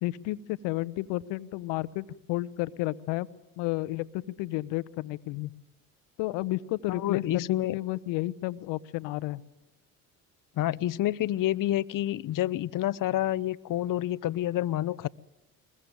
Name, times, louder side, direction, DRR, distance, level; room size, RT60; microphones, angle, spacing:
voice 1, 0.0-3.3 3.6-5.5 6.2-9.4, left 18 dB, 70° left, 1.0 m, -32 dB
voice 2, 6.9-7.8 10.6-15.1, left 13 dB, 45° left, 0.8 m, -28 dB
22.0 x 21.5 x 9.2 m
hypercardioid pair, 60°, 44 cm